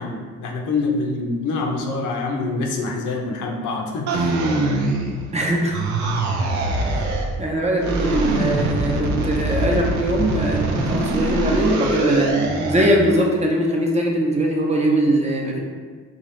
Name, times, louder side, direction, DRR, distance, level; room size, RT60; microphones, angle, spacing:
voice 1, 0.0-4.2, left 3 dB, 85° left, 0 dB, 0.7 m, -25 dB
sound 1, 4.1-5.4 5.7-7.4 7.8-13.0, right 2 dB, 70° right, 0.6 m, -23 dB
voice 2, 5.3-5.8 6.7-15.6, right 1 dB, 20° right, -1 dB, 0.7 m, -21 dB
4.5 x 2.5 x 3.2 m, 1.5 s
cardioid pair, 90°, 30 cm